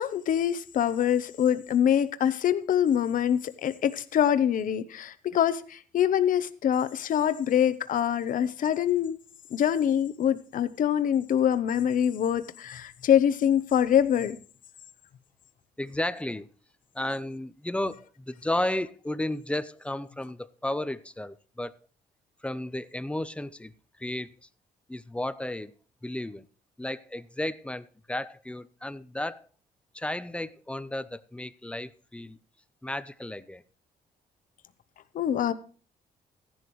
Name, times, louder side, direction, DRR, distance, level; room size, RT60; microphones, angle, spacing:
voice 1, 0.0-9.2 9.5-14.4 35.1-35.5, left 9 dB, 55° left, 0.8 m, -25 dB
voice 2, 15.8-16.5 16.9-21.7 22.4-23.7 24.0-24.3 24.9-25.7 26.0-26.5 26.8-29.5 29.9-32.4 32.8-33.6, left 1 dB, 5° left, 0.5 m, -33 dB
15.0 x 11.0 x 3.1 m
cardioid pair, 130°, 16 cm